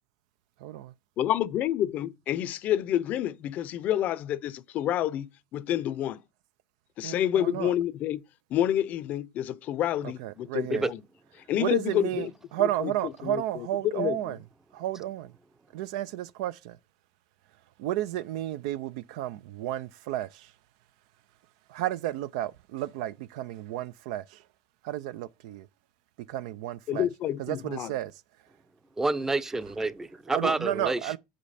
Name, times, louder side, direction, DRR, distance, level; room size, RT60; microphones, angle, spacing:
voice 1, 0.6-0.9 7.0-7.7 10.2-10.9 11.6-14.4 14.7-15.3 15.7-16.8 17.8-20.5 21.7-24.4 24.8-25.7 26.3-27.1 27.4-28.1 30.3-31.2, right 13 dB, 80° right, 0.4 m, -32 dB
voice 2, 1.2-6.2 7.0-8.2 8.5-11.0 11.5-12.3 12.6-12.9 13.2-13.7 13.9-14.3 26.9-27.9, left 11 dB, 50° left, 0.5 m, -28 dB
voice 3, 29.0-31.0, right 2 dB, 10° right, 0.5 m, -28 dB
5.5 x 5.1 x 4.1 m
supercardioid pair, 110°, 3 cm